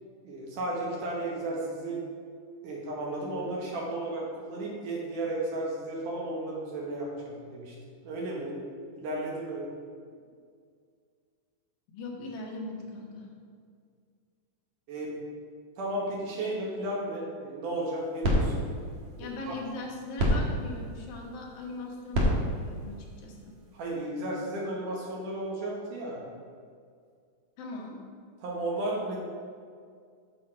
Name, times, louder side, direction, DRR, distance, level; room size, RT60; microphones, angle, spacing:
voice 1, 0.2-2.0 2.6-7.7 8.0-8.5 9.0-9.7 14.9-15.1 15.8-18.7 19.2-19.5 23.7-26.2 28.4-29.2, right 1 dB, 70° right, -3 dB, 2.7 m, -34 dB
voice 2, 11.9-13.3 19.2-23.6 27.6-28.0, left 2 dB, 90° left, -1 dB, 3.1 m, -40 dB
sound 1, 17.7-24.1, equal, 55° right, 2.0 m, -31 dB
8.2 x 7.0 x 4.4 m, 2.2 s
omnidirectional pair, 4.0 m